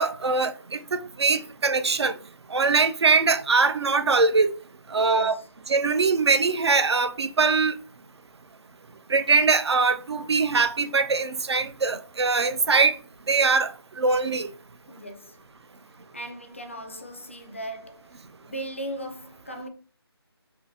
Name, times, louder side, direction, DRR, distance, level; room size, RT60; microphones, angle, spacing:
voice 1, 0.0-2.2 2.5-4.5 4.9-5.4 5.7-7.8 9.1-13.0 13.3-13.7 14.0-14.5, right 4 dB, 75° right, 0.4 m, -22 dB
voice 2, 4.9-5.5 14.9-15.4 16.1-19.7, right 1 dB, 30° left, 0.4 m, -38 dB
3.7 x 2.5 x 2.6 m
figure-of-eight pair, 170°, 14 cm